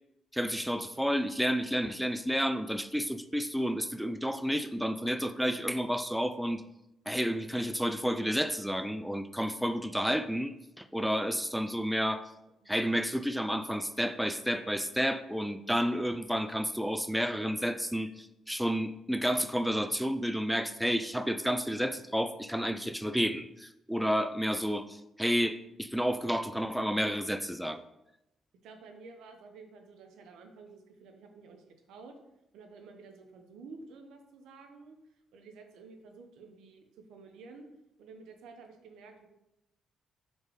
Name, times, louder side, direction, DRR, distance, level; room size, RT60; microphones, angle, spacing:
voice 1, 0.3-6.6 7.1-12.3 12.7-27.8, equal, ahead, 11 dB, 0.3 m, -31 dB
voice 2, 28.6-32.1 32.5-35.0 35.3-37.7 38.0-39.3, right 4 dB, 85° right, 5 dB, 0.9 m, -51 dB
4.7 x 4.5 x 4.8 m, 0.88 s
cardioid pair, 90°, 0 cm